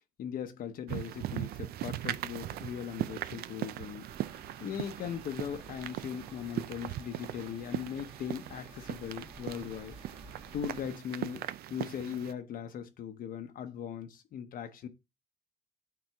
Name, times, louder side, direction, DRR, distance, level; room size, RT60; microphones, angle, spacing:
voice 1, 0.2-4.1 4.6-10.0 10.5-14.9, left 8 dB, 55° left, 0.9 m, -39 dB
sound 1, 0.9-12.3, right 14 dB, 65° right, 0.4 m, -39 dB
sound 2, 4.1-10.9, right 2 dB, 35° right, 2.0 m, -53 dB
9.0 x 4.3 x 3.4 m
cardioid pair, 110°, 17 cm